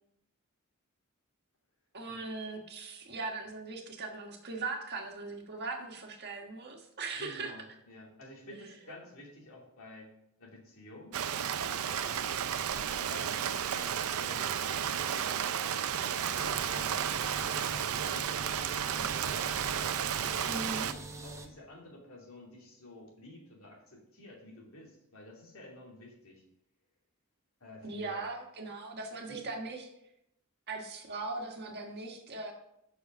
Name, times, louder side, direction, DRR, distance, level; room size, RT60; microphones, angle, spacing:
voice 1, 1.9-7.5 8.8-8.9 20.4-20.9 27.8-29.9 30.7-32.5, right 3 dB, 50° right, 2 dB, 1.6 m, -39 dB
voice 2, 7.1-10.1 10.4-11.2 11.6-12.2 12.7-15.3 16.0-17.0 17.2-19.6 20.2-20.9 21.2-26.4 27.6-28.3 29.3-29.4, left 1 dB, 70° left, -2 dB, 2.7 m, -51 dB
Rain, 11.1-20.9, right 8 dB, 85° right, 0.5 m, -33 dB
sound 1, 16.3-21.5, right 2 dB, 15° right, 0.8 m, -45 dB
7.9 x 6.5 x 5.4 m, 0.79 s
head